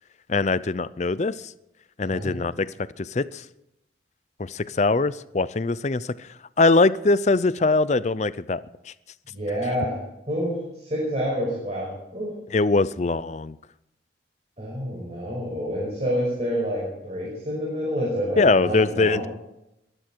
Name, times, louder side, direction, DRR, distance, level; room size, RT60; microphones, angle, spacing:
voice 1, 0.3-1.5 2.0-2.7 3.0-3.4 4.4-6.3 6.6-8.6 8.9-9.0 12.5-13.6 18.4-19.3, left 3 dB, 35° left, 17 dB, 0.5 m, -22 dB
voice 2, 2.1-2.4 9.3-10.0 10.3-12.3 14.6-19.3, equal, 35° right, -4 dB, 5.6 m, -28 dB
22.5 x 12.5 x 4.5 m, 0.87 s
head